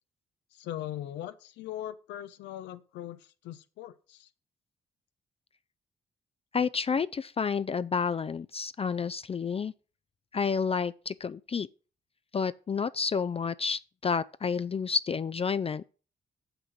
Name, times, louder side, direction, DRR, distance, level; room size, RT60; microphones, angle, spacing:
voice 1, 0.5-4.3, left 12 dB, 85° left, 0.6 m, -40 dB
voice 2, 6.5-9.7 10.3-11.7 12.3-15.9, left 5 dB, 35° left, 0.4 m, -30 dB
7.0 x 6.0 x 6.5 m
supercardioid pair, 55°, 18 cm